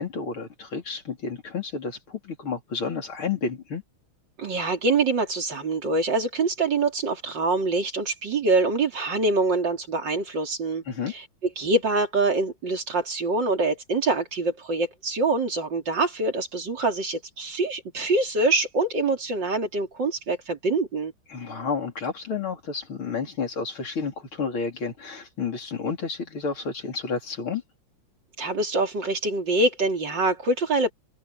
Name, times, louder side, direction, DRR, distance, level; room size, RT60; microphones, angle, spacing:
voice 1, 0.0-3.8 10.9-11.1 21.3-27.6, left 5 dB, 80° left, 4.7 m, -31 dB
voice 2, 4.4-11.2 11.6-21.1 28.4-30.9, right 3 dB, 60° right, 3.8 m, -25 dB
omnidirectional pair, 2.3 m